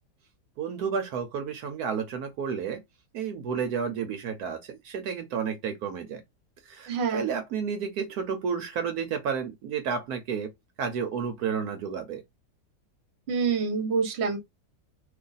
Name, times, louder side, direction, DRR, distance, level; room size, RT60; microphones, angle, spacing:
voice 1, 0.6-2.8 3.1-6.2 6.6-10.5 10.8-12.2, right 6 dB, 75° right, 1.1 m, -31 dB
voice 2, 6.9-7.2 13.3-14.4, right 5 dB, 50° right, 1.0 m, -26 dB
2.7 x 2.5 x 3.8 m
omnidirectional pair, 1.7 m